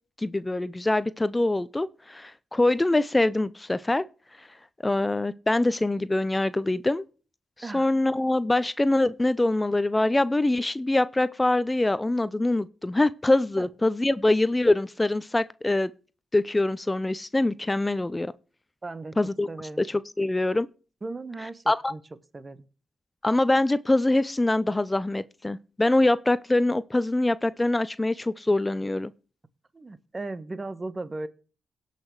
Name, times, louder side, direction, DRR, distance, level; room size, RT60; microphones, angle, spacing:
voice 1, 0.2-4.0 4.4-4.5 4.8-7.0 7.7-15.9 16.3-18.3 19.2-19.5 19.8-20.7 21.7-21.9 23.2-29.1, left 2 dB, 20° left, 0.6 m, -24 dB
voice 2, 18.8-19.2 19.5-19.8 21.0-22.0 22.3-22.6 29.7-31.3, right 2 dB, 35° right, 1.3 m, -36 dB
17.5 x 5.9 x 4.7 m
supercardioid pair, 45°, 0 cm